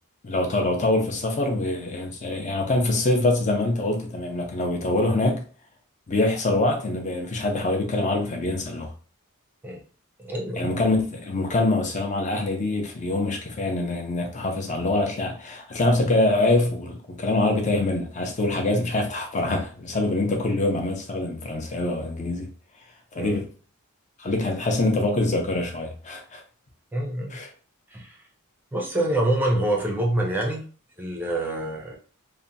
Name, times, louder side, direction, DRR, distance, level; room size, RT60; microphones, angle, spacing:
voice 1, 0.2-5.4 6.1-8.9 10.5-22.5 23.1-23.4 24.2-26.4 27.3-27.5, left 2 dB, 35° left, 0.6 m, -24 dB
voice 2, 10.2-10.8 23.2-23.4 26.9-27.4 27.9-28.2 28.7-30.7 31.0-32.0, right 1 dB, 10° right, 0.5 m, -26 dB
2.8 x 2.2 x 2.6 m
head